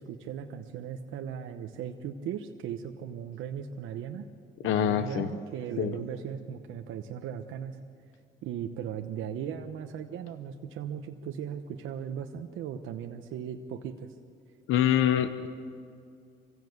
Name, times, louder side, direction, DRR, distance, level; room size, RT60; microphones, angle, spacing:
voice 1, 0.0-4.3 4.6-7.8 8.4-14.1, right 8 dB, 85° right, 5 dB, 1.0 m, -37 dB
voice 2, 4.6-5.3 5.8-5.9 14.7-15.5, left 10 dB, 90° left, 11 dB, 0.8 m, -25 dB
24.0 x 16.0 x 8.0 m, 2.3 s
cardioid pair, 90°, 20 cm